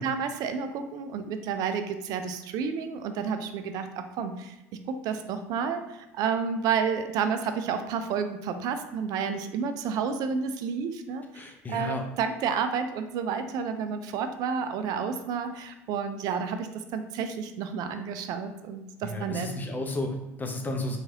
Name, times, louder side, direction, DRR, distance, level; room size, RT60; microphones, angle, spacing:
voice 1, 0.0-19.5, right 6 dB, 55° right, 8 dB, 0.3 m, -31 dB
voice 2, 11.3-12.0 19.0-21.0, left 2 dB, 25° left, 2 dB, 0.6 m, -33 dB
3.0 x 2.4 x 2.8 m, 0.95 s
hypercardioid pair, 70°, 8 cm